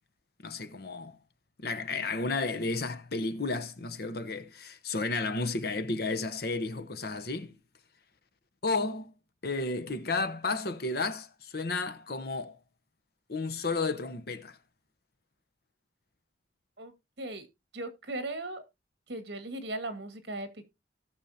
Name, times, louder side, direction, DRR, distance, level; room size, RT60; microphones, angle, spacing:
voice 1, 0.4-1.2 1.6-7.6 8.6-9.1 9.4-12.6 13.3-14.6, left 3 dB, 55° left, 0.9 m, -32 dB
voice 2, 17.7-18.6 19.1-20.6, right 2 dB, 60° right, 1.8 m, -37 dB
18.0 x 6.3 x 2.8 m
head